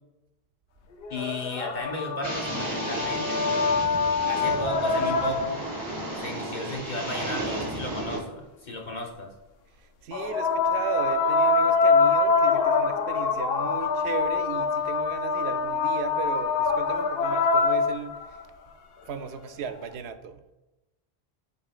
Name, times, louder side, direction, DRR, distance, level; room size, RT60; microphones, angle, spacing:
sound 1, 1.0-5.8 10.1-18.4 19.7-19.8, left 4 dB, 75° left, 0.8 m, -25 dB
voice 1, 1.1-3.4 4.3-5.6 6.1-9.3, left 1 dB, 50° left, 0 dB, 1.2 m, -35 dB
sound 2, 2.2-8.2, right 1 dB, 25° right, 1.6 m, -33 dB
voice 2, 10.0-18.2 19.1-20.4, right 7 dB, 90° right, 9 dB, 0.8 m, -36 dB
11.5 x 3.8 x 2.4 m, 1.0 s
omnidirectional pair, 1.0 m